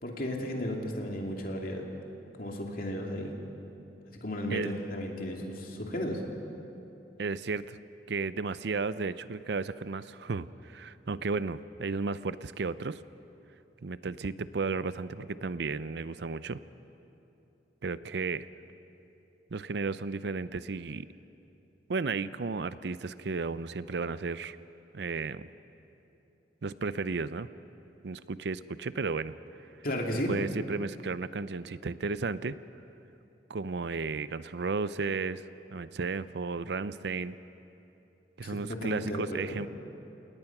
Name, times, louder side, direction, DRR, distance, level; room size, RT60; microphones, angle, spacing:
voice 1, 0.0-1.9 2.4-3.3 4.1-6.2 29.8-30.3 38.4-39.6, left 1 dB, 50° left, 1 dB, 2.7 m, -34 dB
voice 2, 7.2-7.8 8.1-13.0 13.8-16.6 17.8-18.5 19.5-21.1 21.9-24.6 24.9-25.5 26.6-27.5 28.0-29.3 30.3-32.6 33.5-35.4 35.7-37.4 38.4-39.7, right 4 dB, 70° right, 15 dB, 0.5 m, -33 dB
29.0 x 19.0 x 5.9 m, 2.9 s
head